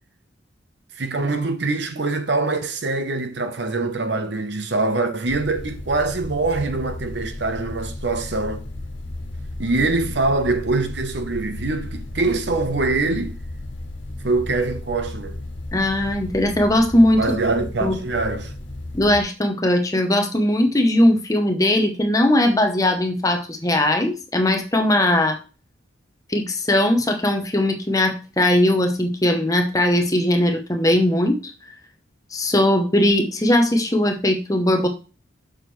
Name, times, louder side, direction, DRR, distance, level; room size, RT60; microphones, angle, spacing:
voice 1, 1.0-8.6 9.6-13.3 14.2-15.4 17.2-18.5, right 3 dB, 65° right, 0.9 m, -24 dB
sound 1, 5.3-19.2, left 1 dB, 75° left, 1.5 m, -34 dB
voice 2, 15.7-17.4 17.8-18.0 18.9-25.4 26.3-31.5 32.3-34.9, left 1 dB, 15° left, 0.9 m, -19 dB
7.4 x 6.3 x 3.2 m
head